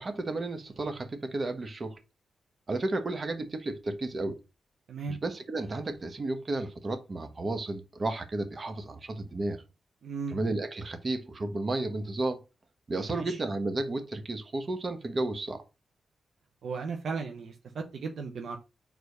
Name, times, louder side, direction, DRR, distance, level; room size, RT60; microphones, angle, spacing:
voice 1, 0.0-2.0 2.7-4.4 5.1-9.6 10.3-12.4 12.9-15.6, right 2 dB, 45° right, 1.2 m, -32 dB
voice 2, 4.9-5.2 10.0-10.4 13.1-13.4 16.6-18.6, right 5 dB, 75° right, 0.8 m, -36 dB
4.8 x 4.0 x 5.3 m
cardioid pair, 55°, 0 cm